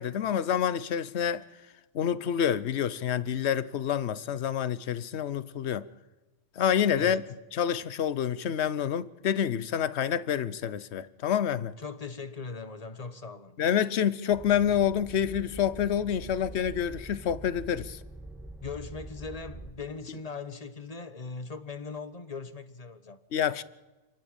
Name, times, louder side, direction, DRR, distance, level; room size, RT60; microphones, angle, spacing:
voice 1, 0.0-1.4 1.9-5.8 6.6-7.2 7.5-11.7 13.6-18.0 23.3-23.6, left 9 dB, 60° left, 1.0 m, -28 dB
voice 2, 7.0-7.3 11.8-13.6 18.6-23.2, left 4 dB, 30° left, 1.2 m, -40 dB
sound 1, 14.3-19.7, right 2 dB, ahead, 1.7 m, -44 dB
29.0 x 11.0 x 8.8 m
omnidirectional pair, 1.3 m